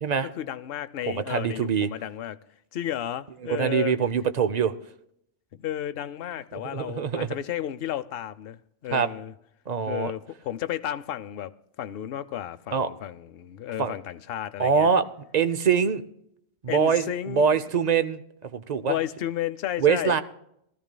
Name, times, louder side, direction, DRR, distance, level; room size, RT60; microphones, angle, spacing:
voice 1, 0.4-2.4 2.7-4.0 5.5-9.3 9.9-11.5 11.8-14.9 16.7-17.5 18.8-20.2, left 11 dB, 70° left, 0.8 m, -33 dB
voice 2, 1.1-1.9 3.4-4.7 6.5-7.3 8.9-9.1 9.7-10.1 12.7-12.9 13.8-13.9 14.6-15.1 15.3-16.0 16.6-18.2 18.5-19.0 19.8-20.2, right 6 dB, 45° right, 0.6 m, -24 dB
19.5 x 13.5 x 2.2 m
omnidirectional pair, 1.1 m